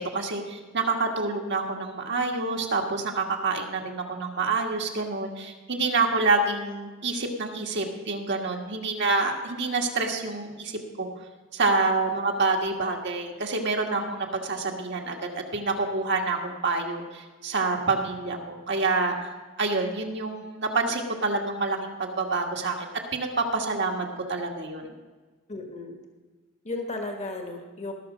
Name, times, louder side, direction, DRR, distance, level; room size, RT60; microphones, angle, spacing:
voice 1, 0.0-11.1 11.5-19.1 19.6-22.9 23.1-24.9, right 3 dB, 55° right, 2 dB, 1.5 m, -27 dB
voice 2, 25.5-26.0 26.6-27.9, left 2 dB, 35° left, 3 dB, 1.4 m, -34 dB
19.0 x 6.5 x 5.0 m, 1.3 s
head